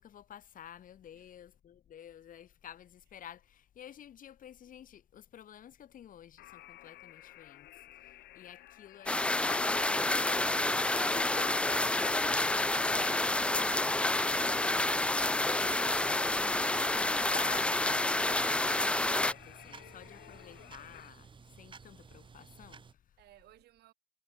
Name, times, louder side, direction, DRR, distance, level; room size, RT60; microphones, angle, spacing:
voice 1, 0.0-16.2 16.5-23.2, left 10 dB, 55° left, 4.1 m, -51 dB
sound 1, 6.4-21.1, left 15 dB, 75° left, 6.1 m, -54 dB
sound 2, 9.1-19.3, left 2 dB, 5° left, 0.4 m, -29 dB
voice 2, 9.9-11.3 23.2-23.9, right 15 dB, 75° right, 5.7 m, -57 dB
sound 3, 10.3-22.9, right 5 dB, 30° right, 2.7 m, -54 dB
cardioid pair, 110°, 17 cm